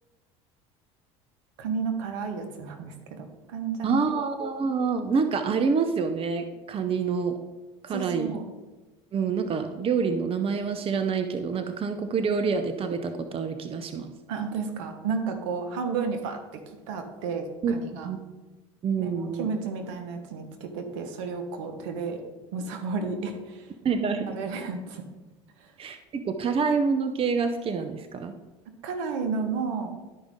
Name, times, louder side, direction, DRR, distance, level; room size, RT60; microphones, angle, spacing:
voice 1, 1.6-4.0 7.9-8.5 14.3-16.6 16.9-18.1 19.0-22.2 22.5-23.7 24.3-25.0 28.7-30.0, right 5 dB, 75° right, 6 dB, 1.3 m, -32 dB
voice 2, 3.8-7.4 7.8-8.4 9.1-14.1 17.6-17.8 18.0-18.2 18.8-19.5 23.8-24.4 25.8-28.3, right 5 dB, 35° right, 8 dB, 0.8 m, -27 dB
12.0 x 5.2 x 3.7 m, 1.2 s
hypercardioid pair, 80°, 16 cm